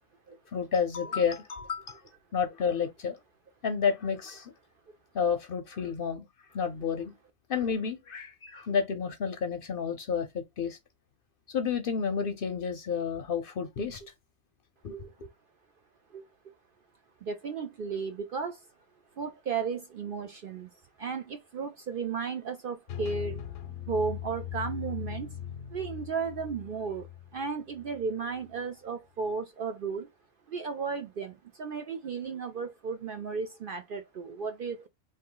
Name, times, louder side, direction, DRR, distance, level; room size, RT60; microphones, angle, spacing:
voice 1, 0.5-2.0 2.3-3.2 3.6-4.5 5.1-6.2 6.5-7.1 7.5-10.8 11.5-14.1 14.8-15.1, left 6 dB, 55° left, 0.7 m, -30 dB
voice 2, 17.2-18.6 19.2-20.7 21.0-23.4 23.9-25.4 25.7-30.1 30.5-34.9, right 5 dB, 60° right, 0.6 m, -34 dB
sound 1, 22.9-28.6, left 11 dB, 80° left, 0.9 m, -40 dB
3.6 x 2.6 x 3.8 m
omnidirectional pair, 1.3 m